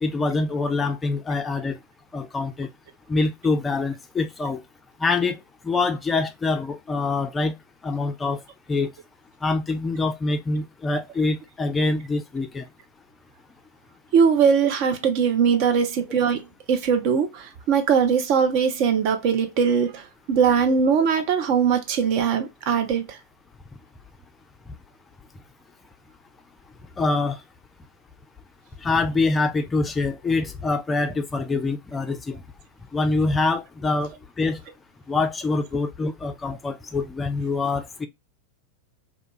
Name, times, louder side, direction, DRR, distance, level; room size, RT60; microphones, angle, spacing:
voice 1, 0.0-1.7 2.1-2.7 3.1-4.6 5.0-5.4 5.6-7.5 7.8-8.4 8.7-8.9 9.4-12.6 27.0-27.4 28.8-32.4 32.9-34.1 34.4-34.6 35.1-38.1, left 3 dB, 15° left, 0.3 m, -25 dB
voice 2, 14.1-16.4 16.7-20.0 20.3-23.1, right 6 dB, 45° right, 0.5 m, -21 dB
2.3 x 2.3 x 2.7 m
figure-of-eight pair, 90°, 0 cm